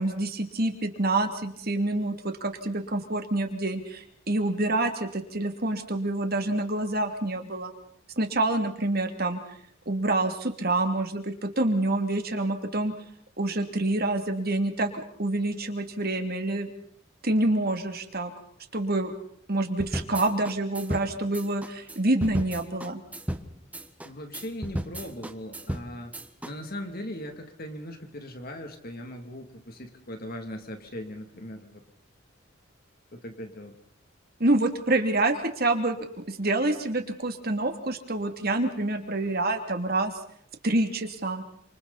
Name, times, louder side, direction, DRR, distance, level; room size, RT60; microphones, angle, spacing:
voice 1, 0.0-7.7 8.2-9.6 9.9-12.9 13.4-16.7 17.2-18.3 18.7-19.1 19.5-23.0 34.4-36.0 36.3-40.1 40.6-41.4, right 2 dB, 50° right, 5 dB, 2.9 m, -27 dB
sound 1, 19.8-26.5, right 1 dB, 5° right, 1.3 m, -35 dB
voice 2, 24.0-26.1 26.4-31.8 33.1-33.8, left 1 dB, 45° left, 5 dB, 2.9 m, -39 dB
29.5 x 27.5 x 4.3 m, 0.63 s
head